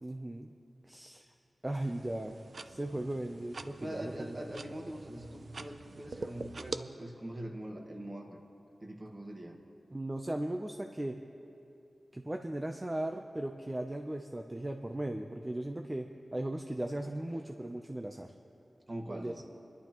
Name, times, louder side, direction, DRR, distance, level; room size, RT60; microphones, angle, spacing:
voice 1, 0.0-0.5 0.8-1.2 1.6-2.4 2.7-4.4 9.9-11.2 12.1-18.3 19.1-19.4, right 1 dB, 20° right, 3 dB, 0.6 m, -37 dB
sound 1, 1.7-6.8, right 3 dB, 65° right, 0.5 m, -45 dB
voice 2, 3.8-8.4 8.8-9.6 18.9-19.4, right 1 dB, 40° right, 2 dB, 1.6 m, -42 dB
26.5 x 11.5 x 3.0 m, 2.8 s
wide cardioid pair, 80°, 0 cm